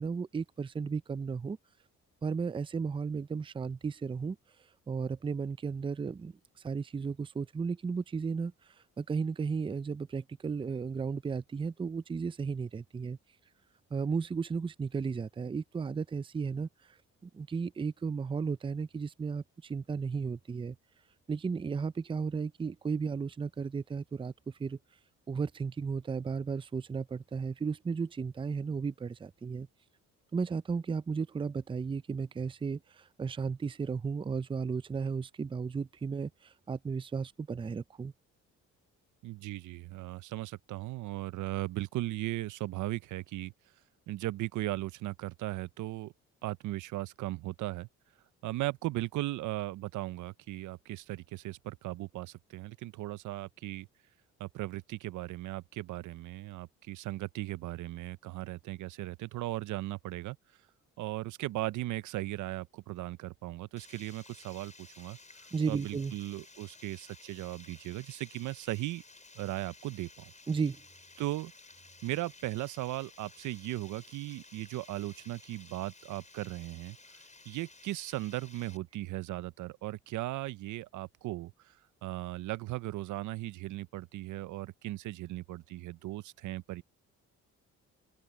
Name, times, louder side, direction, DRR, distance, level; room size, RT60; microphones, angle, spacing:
voice 1, 0.0-1.6 2.2-4.4 4.9-6.3 6.6-8.5 9.0-13.2 13.9-16.7 17.2-20.8 21.3-24.3 24.6-24.8 25.3-29.7 30.3-38.1 65.5-66.1 70.5-70.8, right 5 dB, 15° right, 0.4 m, -34 dB
voice 2, 39.2-43.5 44.1-46.1 46.4-47.9 48.4-53.9 54.4-60.4 61.0-65.2 65.7-69.0 69.4-70.3 71.2-71.5 72.0-77.0 77.5-81.5 82.0-86.8, right 17 dB, 75° right, 0.5 m, -37 dB
Water, 63.8-78.8, left 3 dB, 25° left, 6.7 m, -55 dB
open air
cardioid pair, 90°, 30 cm